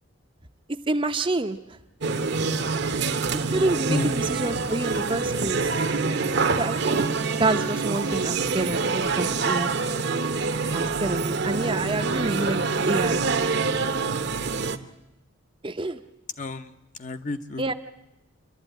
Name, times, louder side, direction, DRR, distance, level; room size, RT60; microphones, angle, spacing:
voice 1, 0.9-1.6 3.3-5.7 6.6-7.1 7.4-9.7 10.7-13.2 15.6-16.0 17.6-17.7, right 2 dB, 25° right, 8 dB, 0.7 m, -28 dB
sound 1, 2.0-14.8, right 4 dB, 50° right, 0.9 m, -26 dB
voice 2, 16.4-17.7, left 3 dB, 35° left, 9 dB, 0.8 m, -31 dB
27.5 x 12.0 x 9.1 m, 0.92 s
head